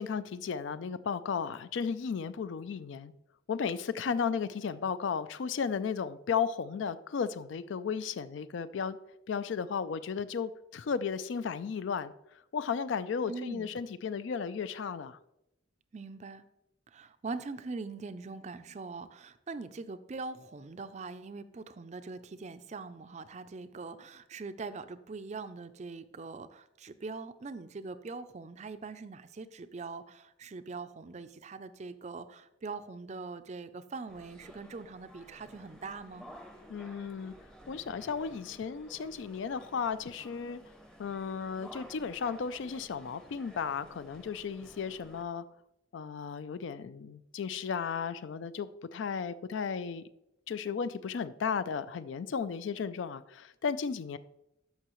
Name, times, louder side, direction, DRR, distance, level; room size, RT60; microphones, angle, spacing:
voice 1, 0.0-3.1 3.5-9.0 9.3-12.1 12.5-15.2 36.7-37.3 37.7-40.6 41.0-45.4 45.9-50.0 50.5-54.2, left 6 dB, 70° left, 0.4 m, -34 dB
voice 2, 13.3-13.7 15.9-16.5 16.9-36.3, right 4 dB, 35° right, 0.4 m, -42 dB
sound 1, 34.1-45.2, equal, 5° left, 0.6 m, -53 dB
13.0 x 5.6 x 3.0 m
head